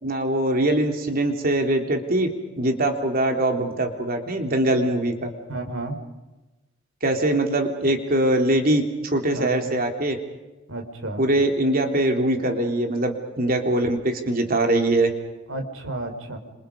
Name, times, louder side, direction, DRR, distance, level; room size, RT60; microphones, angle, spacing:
voice 1, 0.0-2.3 2.6-5.3 7.0-8.8 9.1-10.2 11.2-15.1, right 1 dB, 45° right, 4 dB, 3.4 m, -22 dB
voice 2, 5.5-6.0 9.3-9.5 10.7-11.2 15.5-16.4, right 2 dB, 80° right, 4 dB, 4.9 m, -31 dB
29.5 x 28.5 x 5.3 m, 1.1 s
head